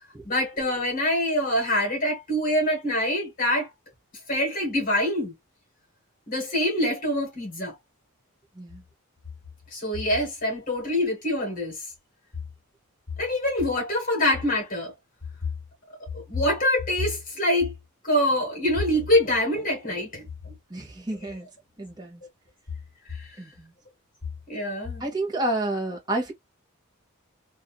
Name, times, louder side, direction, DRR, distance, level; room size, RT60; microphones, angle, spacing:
voice 1, 0.2-3.7 4.3-5.3 6.3-7.7 9.7-11.8 13.2-14.9 16.3-17.7 18.0-20.3 24.5-25.1, left 1 dB, 40° left, 1.4 m, -25 dB
voice 2, 20.7-21.4 21.8-22.2 23.4-23.7 25.0-26.3, right 1 dB, 20° right, 0.9 m, -29 dB
2.6 x 2.5 x 2.3 m
head